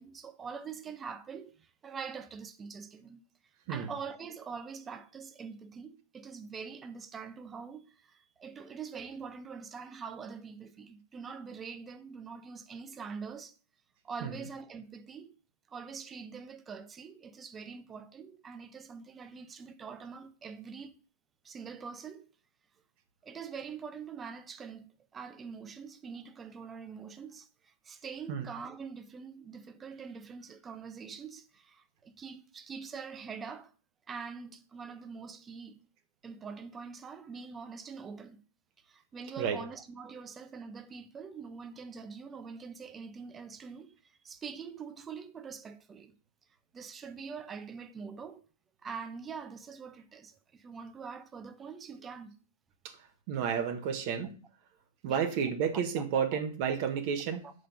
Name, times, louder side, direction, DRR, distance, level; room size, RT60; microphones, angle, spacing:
voice 1, 0.0-3.2 3.7-13.6 14.0-15.3 15.7-21.0 21.4-22.3 23.2-33.7 34.1-35.8 36.2-38.4 38.8-46.1 46.7-48.4 48.8-52.4 55.0-55.2 57.4-57.5, right 5 dB, 20° right, 0.7 m, -44 dB
voice 2, 53.3-54.3 55.0-57.4, right 7 dB, 50° right, 1.1 m, -31 dB
5.2 x 3.8 x 5.7 m
hypercardioid pair, 115°, 0 cm